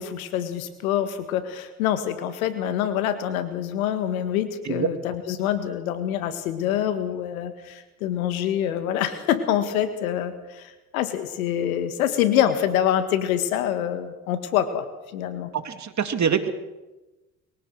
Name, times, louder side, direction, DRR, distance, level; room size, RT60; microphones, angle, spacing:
voice 1, 0.0-14.9 15.1-15.5, left 10 dB, 85° left, 11 dB, 1.9 m, -26 dB
voice 2, 15.5-16.5, right 7 dB, 40° right, 9 dB, 2.6 m, -24 dB
23.0 x 17.5 x 6.6 m, 1.1 s
hypercardioid pair, 60°, 41 cm